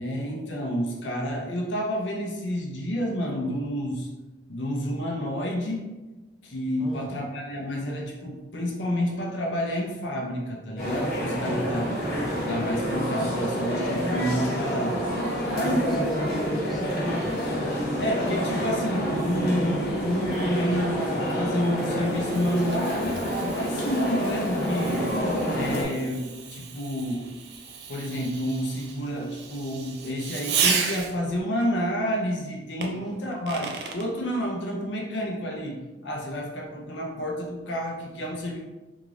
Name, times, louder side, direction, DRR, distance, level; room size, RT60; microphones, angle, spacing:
voice 1, 0.0-4.1 4.5-5.9 6.4-12.0 12.5-15.1 15.5-16.0 17.5-17.6 18.0-25.1 25.5-27.3 27.9-38.6, equal, 85° left, -1 dB, 0.7 m, -29 dB
voice 2, 6.8-7.1 11.3-11.7 15.3-17.3 32.9-33.0, equal, ahead, -6 dB, 0.8 m, -36 dB
sound 1, 10.8-25.8, equal, 55° left, 1.3 m, -28 dB
Fireworks, 21.4-31.4 32.8-34.1, right 6 dB, 65° right, 0.4 m, -34 dB
3.6 x 2.5 x 3.2 m, 1.1 s
head